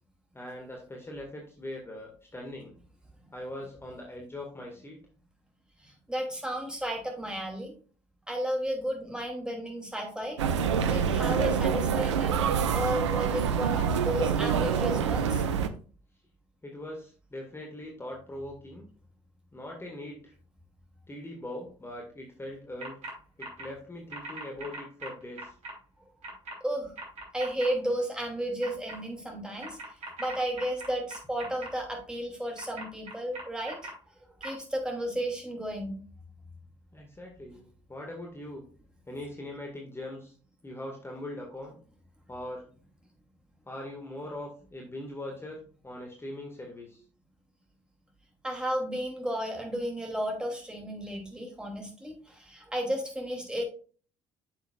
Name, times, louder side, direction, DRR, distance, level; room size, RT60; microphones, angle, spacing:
voice 1, 0.3-2.7 3.3-5.0 16.6-18.9 19.5-20.3 21.1-23.0 23.4-25.5 36.9-38.7 39.1-40.3 40.6-41.8 42.3-42.7 43.7-47.0, left 1 dB, 15° left, 0 dB, 1.8 m, -41 dB
voice 2, 5.8-7.7 8.3-10.4 10.7-15.4 26.6-26.9 27.3-29.8 30.2-33.8 34.4-36.0 48.4-53.6, right 1 dB, 5° right, 1 dB, 2.6 m, -33 dB
sound 1, 10.4-15.7, right 7 dB, 75° right, 0.5 m, -26 dB
sound 2, 22.8-23.1 23.4-23.7 24.1-25.7 26.2-26.5 27.0-27.7 28.6-29.0 29.6-31.7 32.6-33.9 34.4-34.5, right 2 dB, 45° right, 3.1 m, -40 dB
9.0 x 6.8 x 2.4 m, 0.41 s
figure-of-eight pair, 50°, 15 cm